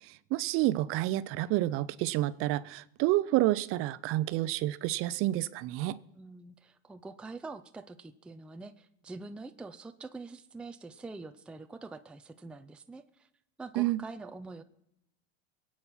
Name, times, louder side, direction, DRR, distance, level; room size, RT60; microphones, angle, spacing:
voice 1, 0.0-6.0 13.8-14.0, right 16 dB, 45° right, 0.6 m, -29 dB
voice 2, 6.1-13.3 13.6-14.6, right 3 dB, 5° right, 0.4 m, -45 dB
22.5 x 8.7 x 5.6 m
supercardioid pair, 135°, 32 cm